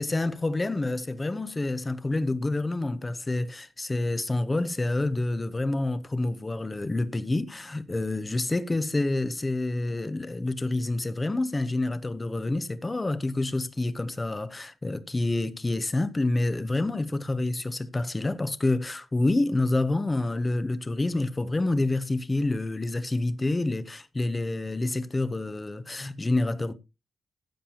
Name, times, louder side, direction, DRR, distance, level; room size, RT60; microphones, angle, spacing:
voice 1, 0.0-26.7, left 2 dB, 20° left, 0.8 m, -28 dB
15.5 x 7.4 x 2.9 m
wide cardioid pair, 120°, 0 cm